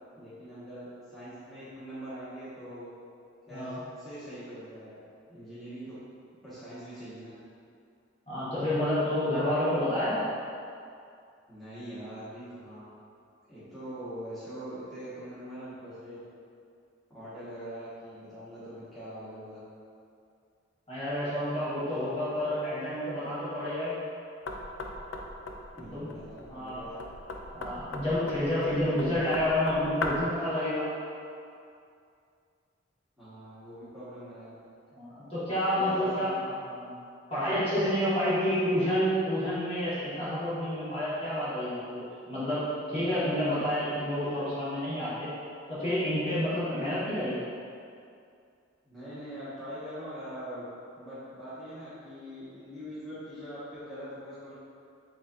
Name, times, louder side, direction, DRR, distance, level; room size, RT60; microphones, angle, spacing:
voice 1, 0.2-2.9 3.5-5.0 5.3-5.9 6.4-7.3 11.5-12.9 13.5-16.2 17.1-19.6 25.7-27.0 33.2-34.5 35.7-36.4 48.8-50.6 50.9-54.5, equal, ahead, -15 dB, 1.2 m, -43 dB
voice 2, 8.3-10.2 20.9-24.0 25.9-26.1 26.5-26.8 27.5-30.9 34.9-36.9 37.3-45.3 45.7-47.3, left 1 dB, 30° left, -12 dB, 1.5 m, -29 dB
Knock, 24.5-30.4, left 2 dB, 90° left, 0.4 m, -38 dB
7.2 x 2.7 x 2.5 m, 2.4 s
head